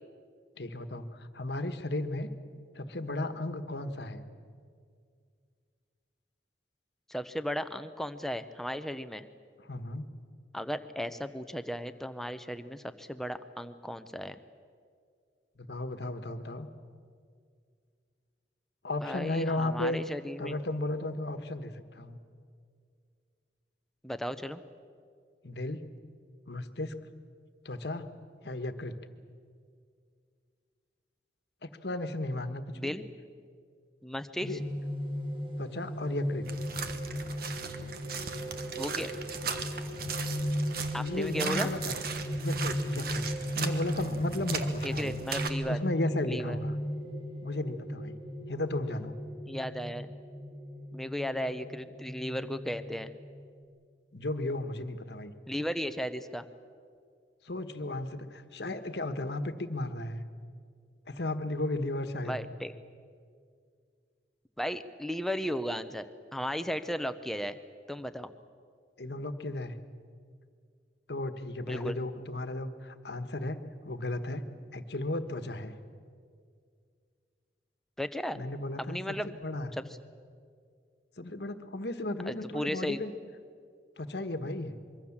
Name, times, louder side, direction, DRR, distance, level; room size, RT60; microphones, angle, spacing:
voice 1, 0.6-2.3 2.7-4.2 9.7-10.1 15.6-16.7 18.8-20.0 20.4-22.2 25.4-25.8 26.5-27.0 27.6-28.1 28.4-28.9 31.6-32.9 34.4-34.6 35.6-36.5 40.9-41.9 42.4-43.2 43.5-45.1 45.7-46.8 47.4-48.2 48.5-49.1 54.1-55.3 57.4-60.2 61.1-62.4 69.0-69.8 71.1-74.4 74.7-75.7 78.3-79.7 81.2-83.1 84.0-84.7, left 2 dB, 65° left, 9 dB, 1.4 m, -35 dB
voice 2, 7.1-9.2 10.5-14.4 19.0-20.5 24.0-24.6 32.7-33.0 34.0-34.6 38.8-39.1 40.9-41.7 44.8-45.8 46.2-46.6 49.5-50.1 50.9-53.1 55.5-56.5 62.2-62.7 64.6-67.6 67.9-68.3 71.7-72.0 78.0-78.4 78.8-79.3 79.7-79.8 82.3-83.0, equal, ahead, 10 dB, 0.8 m, -35 dB
sound 1, 34.4-53.6, equal, 30° right, 2.8 m, -36 dB
sound 2, 36.4-45.5, right 5 dB, 55° right, 1.5 m, -38 dB
24.5 x 23.5 x 7.3 m, 2.2 s
head